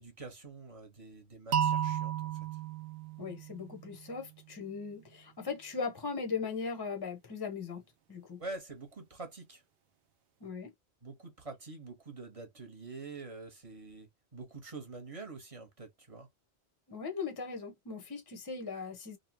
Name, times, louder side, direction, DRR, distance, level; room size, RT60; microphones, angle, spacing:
voice 1, 0.0-2.3 8.4-9.6 11.0-16.3, right 3 dB, 35° right, 1.0 m, -46 dB
sound 1, 1.5-4.4, right 9 dB, 70° right, 0.7 m, -34 dB
voice 2, 3.2-7.8 8.1-8.4 10.4-10.7 16.9-19.2, left 5 dB, 30° left, 0.5 m, -38 dB
2.8 x 2.1 x 2.7 m
omnidirectional pair, 1.1 m